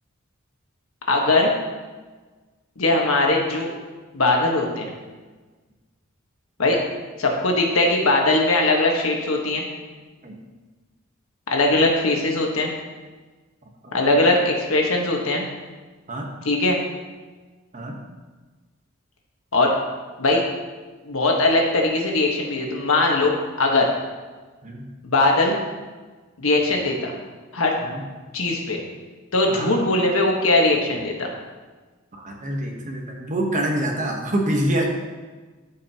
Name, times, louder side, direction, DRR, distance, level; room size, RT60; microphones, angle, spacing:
voice 1, 1.1-1.5 2.8-3.7 4.1-4.9 6.6-6.8 7.2-9.6 11.5-12.7 13.9-15.4 16.4-16.8 19.5-19.7 20.2-20.4 21.0-23.9 25.0-25.6 26.4-27.1 27.5-27.8 28.3-28.8 29.3-31.3, left 2 dB, 75° left, 0 dB, 1.4 m, -20 dB
voice 2, 13.8-14.4 16.1-16.3 17.7-18.0 24.6-24.9 27.8-28.0 29.5-29.7 32.1-34.9, right 1 dB, 35° right, 1 dB, 1.2 m, -26 dB
13.5 x 5.2 x 2.9 m, 1.3 s
head